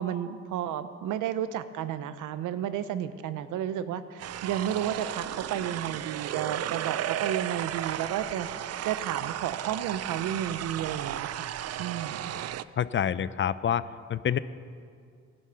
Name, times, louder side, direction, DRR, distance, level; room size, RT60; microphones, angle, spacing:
voice 1, 0.0-8.5 8.8-11.5 11.8-12.2, right 10 dB, 85° right, 12 dB, 0.8 m, -32 dB
sound 1, 4.2-12.6, right 11 dB, 55° right, 0.5 m, -34 dB
voice 2, 12.8-14.4, left 9 dB, 40° left, 16 dB, 0.5 m, -27 dB
17.0 x 11.0 x 5.8 m, 2.3 s
cardioid pair, 90°, 30 cm